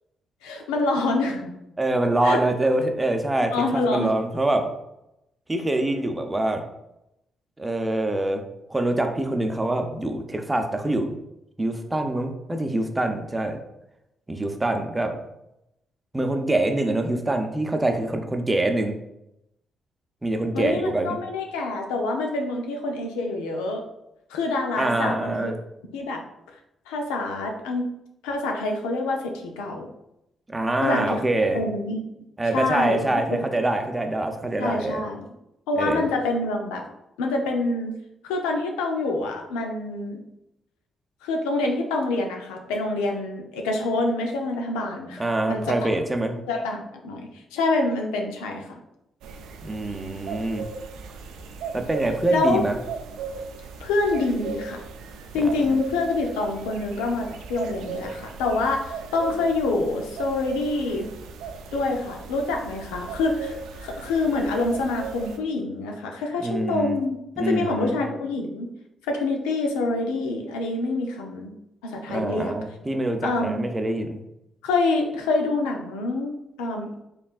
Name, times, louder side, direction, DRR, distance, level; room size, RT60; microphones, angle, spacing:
voice 1, 0.4-1.5 2.2-2.4 3.5-4.1 20.5-23.8 24.3-25.5 25.9-26.2 26.9-27.9 28.2-29.9 30.8-31.2 31.5-32.0 32.5-33.0 33.3-33.4 34.6-35.3 35.7-36.8 37.2-37.9 38.2-40.2 41.2-45.8 46.5-48.8 52.3-52.6 53.8-54.8 55.3-61.1 61.7-68.7 69.1-71.5 71.8-72.5 73.2-73.6 74.6-77.0, left 2 dB, 85° left, 2 dB, 0.5 m, -26 dB
voice 2, 1.8-4.7 5.5-6.6 7.6-8.4 8.7-11.1 11.6-13.6 14.3-15.2 16.1-18.9 20.2-21.2 24.8-25.6 30.5-31.6 32.4-35.0 35.8-36.1 45.2-46.3 49.6-50.7 51.7-52.8 55.4-55.8 66.4-67.0 67.4-68.0 72.1-74.2, right 2 dB, 20° right, 5 dB, 0.6 m, -25 dB
sound 1, 49.2-65.4, right 5 dB, 80° right, 0.4 m, -37 dB
4.2 x 3.2 x 2.4 m, 0.85 s
hypercardioid pair, 45°, 0 cm